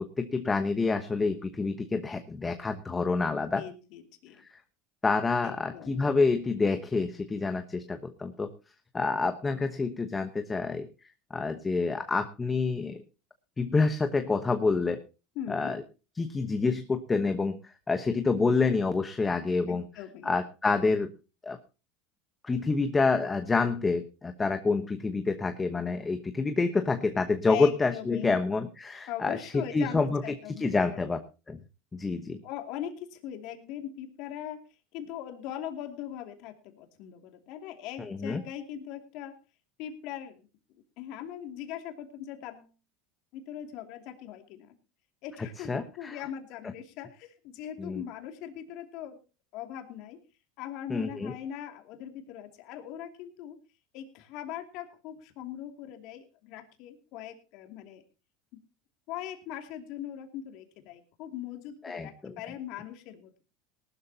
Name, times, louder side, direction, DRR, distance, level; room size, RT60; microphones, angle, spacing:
voice 1, 0.0-3.6 5.0-8.5 8.9-10.9 11.3-13.0 13.6-15.0 15.5-15.8 16.2-19.8 20.2-21.1 21.4-21.6 22.4-30.2 30.6-31.2 31.5-31.6 31.9-32.4 38.0-38.4 45.6-46.2 46.6-46.7 47.8-48.0 50.9-51.3 61.8-62.3, left 4 dB, 15° left, 7 dB, 1.1 m, -28 dB
voice 2, 3.5-4.4 5.4-6.1 15.3-15.8 19.7-20.3 27.5-28.3 29.1-31.1 32.4-34.6 34.9-39.3 39.8-40.5 41.0-42.7 43.3-44.7 45.2-49.2 49.5-50.2 50.6-53.6 53.9-58.0 59.1-63.5, left 10 dB, 60° left, 5 dB, 2.6 m, -40 dB
19.0 x 12.5 x 2.8 m, 0.32 s
supercardioid pair, 120°, 0 cm